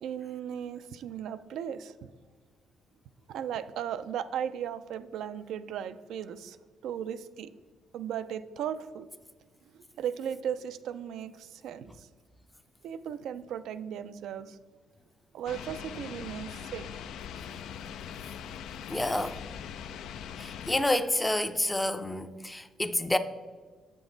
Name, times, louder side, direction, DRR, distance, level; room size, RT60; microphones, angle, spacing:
voice 1, 0.0-1.9 3.3-6.6 6.8-7.5 7.9-9.1 10.0-12.1 12.8-14.6 15.3-16.9, right 9 dB, 80° right, 0.3 m, -36 dB
sound 1, 15.5-20.8, left 8 dB, 85° left, 0.3 m, -41 dB
voice 2, 18.9-19.4 20.4-23.2, left 1 dB, 10° left, 0.4 m, -29 dB
7.0 x 6.0 x 3.8 m
cardioid pair, 90°, 0 cm